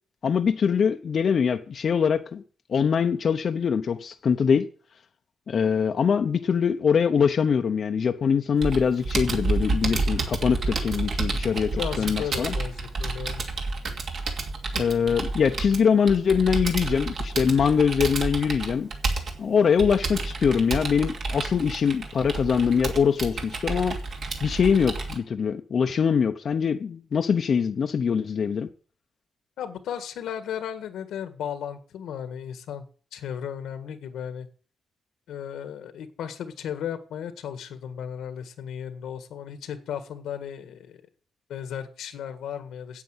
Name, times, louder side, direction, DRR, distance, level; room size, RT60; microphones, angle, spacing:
voice 1, 0.2-2.4 2.7-4.7 5.5-12.5 14.7-18.9 19.4-24.0 24.4-28.7, left 6 dB, 50° left, 0.8 m, -23 dB
Computer keyboard, 8.6-25.2, right 3 dB, 55° right, 2.5 m, -30 dB
voice 2, 11.7-13.4 29.6-32.8 33.1-34.5 35.3-41.0 41.5-43.0, left 9 dB, 85° left, 1.6 m, -35 dB
9.5 x 8.4 x 8.0 m
cardioid pair, 100°, 0 cm